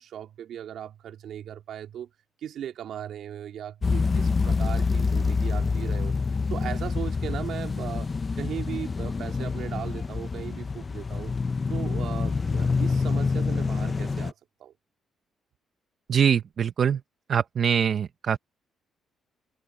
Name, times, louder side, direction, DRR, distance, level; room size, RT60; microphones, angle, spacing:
voice 1, 0.0-2.1 2.4-6.2 6.5-11.4 11.7-14.3 14.6-14.7, right 10 dB, 70° right, 3.0 m, -38 dB
sound 1, 3.8-14.3, left 4 dB, 30° left, 0.7 m, -27 dB
voice 2, 16.1-17.0 17.3-18.4, right 8 dB, 55° right, 1.0 m, -23 dB
cardioid pair, 90°, 0 cm